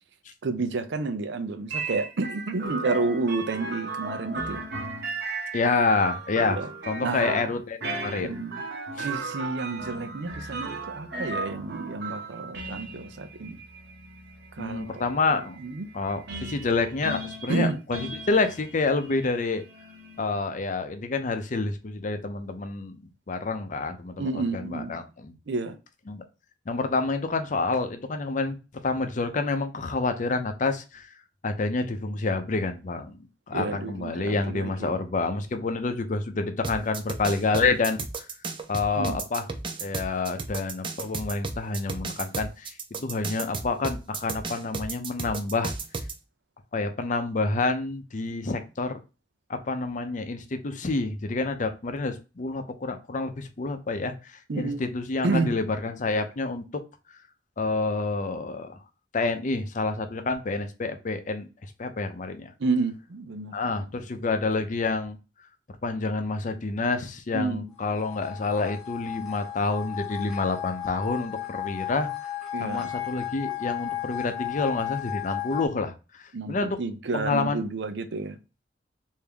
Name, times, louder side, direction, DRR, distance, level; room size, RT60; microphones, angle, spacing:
voice 1, 0.4-4.7 6.5-6.7 7.0-7.5 8.2-8.6 9.0-13.6 14.5-15.9 17.5-17.8 24.2-25.0 25.5-25.8 33.5-35.0 39.0-39.2 54.5-54.9 55.2-55.5 62.6-63.5 67.3-67.7 72.5-72.9 76.3-78.4, right 3 dB, 85° right, 0.5 m, -30 dB
sound 1, 1.7-20.4, right 3 dB, 65° right, 0.9 m, -36 dB
voice 2, 5.5-6.6 6.9-8.3 9.0-9.1 14.6-15.6 15.9-19.6 20.2-25.3 26.1-26.2 26.7-28.6 28.8-31.1 31.4-33.2 33.5-38.0 38.7-39.4 39.8-45.7 46.7-49.0 49.5-56.6 57.6-58.7 59.1-61.5 61.8-62.5 63.5-65.2 65.8-72.1 72.6-75.9 76.5-76.8 77.1-77.6, left 3 dB, 45° left, 0.6 m, -28 dB
sound 2, 36.6-46.1, right 3 dB, 30° right, 0.5 m, -33 dB
sound 3, 67.9-75.7, left 13 dB, ahead, 0.9 m, -34 dB
3.4 x 2.7 x 3.4 m
head